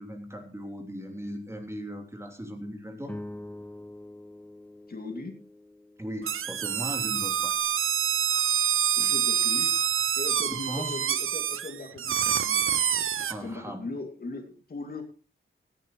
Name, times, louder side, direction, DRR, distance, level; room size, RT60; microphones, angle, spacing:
voice 1, 0.0-3.2 6.0-7.6 10.5-11.0 13.3-13.9, equal, 15° right, 3 dB, 3.2 m, -38 dB
sound 1, 3.0-7.6, left 1 dB, 5° left, 0.9 m, -45 dB
voice 2, 4.9-5.3 9.0-9.8 10.2-12.6 13.4-15.0, left 3 dB, 45° left, 4 dB, 2.5 m, -39 dB
sound 2, 6.2-13.3, right 9 dB, 80° right, 0.6 m, -26 dB
17.0 x 14.5 x 3.1 m, 0.33 s
wide cardioid pair, 135°, 21 cm